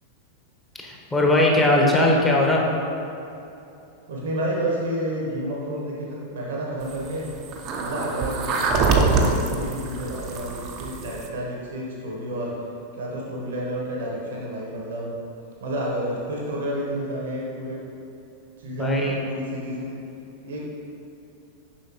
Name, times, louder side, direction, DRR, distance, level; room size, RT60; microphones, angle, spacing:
voice 1, 0.8-2.7 18.7-19.1, left 1 dB, 10° left, -2 dB, 1.0 m, -20 dB
voice 2, 4.1-7.3 7.8-12.7 12.9-15.2 15.6-17.8 18.6-19.9 20.4-20.6, right 1 dB, 60° right, -3 dB, 0.9 m, -30 dB
sound 1, 6.8-11.3, right 4 dB, 35° right, 0.6 m, -25 dB
7.1 x 5.5 x 2.9 m, 2.8 s
figure-of-eight pair, 90°, 0 cm